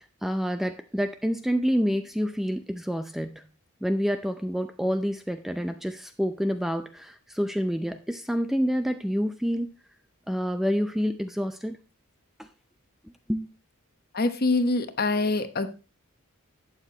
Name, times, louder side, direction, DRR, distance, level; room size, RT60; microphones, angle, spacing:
voice 1, 0.2-3.4 3.8-9.7 10.3-11.8 12.4-12.5 13.3-13.5, equal, ahead, 8 dB, 0.5 m, -28 dB
voice 2, 14.1-15.7, left 2 dB, 45° left, 10 dB, 1.0 m, -24 dB
12.0 x 8.9 x 2.9 m, 0.32 s
head